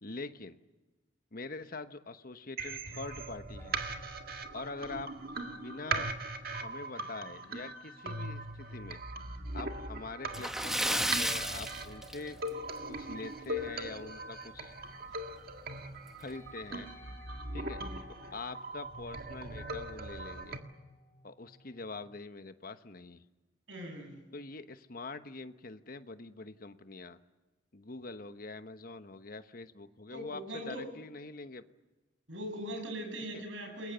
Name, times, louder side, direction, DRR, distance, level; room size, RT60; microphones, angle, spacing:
voice 1, 0.0-0.6 1.3-3.8 4.5-5.1 5.5-6.1 6.6-9.0 9.5-12.4 12.9-14.7 16.2-16.9 17.5-17.8 18.3-20.6 21.2-23.2 24.3-27.2 27.7-31.6 33.3-33.4, left 3 dB, 50° left, 10 dB, 1.1 m, -44 dB
sound 1, 2.6-20.6, right 2 dB, 50° right, 1.8 m, -40 dB
sound 2, 3.6-22.2, left 1 dB, 15° left, 3.4 m, -59 dB
Splash splatter, 10.3-12.7 13.0-13.2 13.6-13.7 15.1-15.2 15.6-15.7 16.3-16.5, equal, ahead, 1.0 m, -33 dB
voice 2, 23.7-24.2 30.1-30.9 32.3-33.9, equal, 85° right, 4 dB, 7.3 m, -40 dB
29.0 x 21.5 x 6.9 m, 1.2 s
head